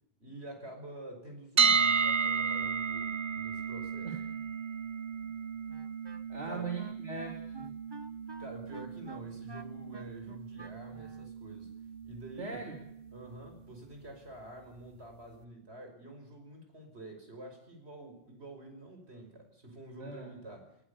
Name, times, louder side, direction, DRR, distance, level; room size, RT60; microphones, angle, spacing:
voice 1, 0.2-4.1 6.5-6.6 8.4-11.7 12.0-12.6 13.1-20.7, right 1 dB, 65° right, 4 dB, 5.9 m, -48 dB
sound 1, 1.6-13.5, right 5 dB, 45° right, 1.3 m, -34 dB
Wind instrument woodwind instrument, 5.7-11.3, right 2 dB, 20° right, 1.1 m, -50 dB
voice 2, 6.3-7.8 12.4-12.8 20.0-20.3, right 4 dB, 85° right, 1 dB, 3.5 m, -40 dB
19.5 x 19.0 x 8.5 m, 0.78 s
omnidirectional pair, 1.2 m